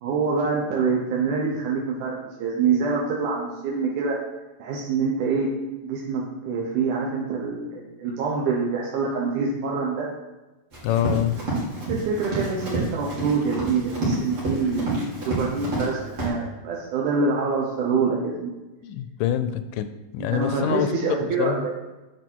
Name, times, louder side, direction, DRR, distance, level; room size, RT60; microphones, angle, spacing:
voice 1, 0.0-4.2 4.6-5.5 5.8-10.1 11.9-18.5 20.3-21.7, right 4 dB, 70° right, -3 dB, 2.3 m, -25 dB
Run, 10.7-15.9 16.2-16.3, right 2 dB, 40° right, 3.3 m, -28 dB
voice 2, 10.8-11.4 18.8-21.7, left 11 dB, 80° left, 11 dB, 2.1 m, -26 dB
9.4 x 6.0 x 4.6 m, 1.1 s
omnidirectional pair, 4.0 m